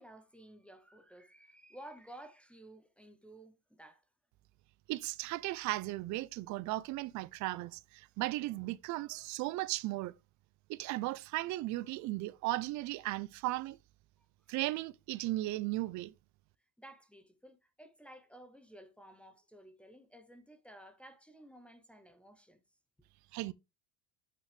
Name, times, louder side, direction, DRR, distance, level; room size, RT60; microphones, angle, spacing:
voice 1, 0.0-4.0 14.5-14.6 16.8-22.6, right 1 dB, 5° left, 0.6 m, -54 dB
voice 2, 4.9-10.1 10.7-13.8 14.5-16.1 23.3-23.5, right 18 dB, 50° right, 0.5 m, -36 dB
9.1 x 6.0 x 3.3 m
cardioid pair, 170°, 39 cm